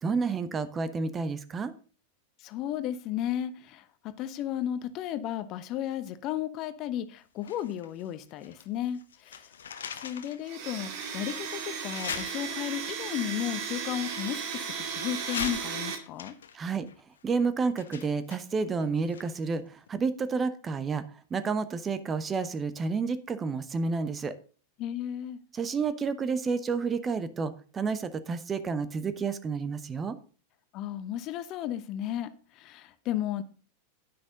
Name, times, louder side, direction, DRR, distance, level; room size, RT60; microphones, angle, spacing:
voice 1, 0.0-1.7 16.5-16.9 17.2-21.0 21.3-24.4 25.5-30.2, right 4 dB, 20° right, 14 dB, 0.9 m, -30 dB
voice 2, 2.4-9.5 9.9-16.4 24.8-25.4 30.7-33.4, left 11 dB, 40° left, 13 dB, 0.9 m, -34 dB
sound 1, 7.4-8.7 8.9-10.5 11.0-11.1 11.9-12.9 13.8-14.8 15.2-19.6 19.9-20.0, left 7 dB, 65° left, 1.0 m, -41 dB
Domestic sounds home sounds, 10.4-15.9, right 6 dB, 45° right, 2.3 m, -35 dB
9.9 x 9.7 x 3.8 m, 0.38 s
figure-of-eight pair, 90°, 0 cm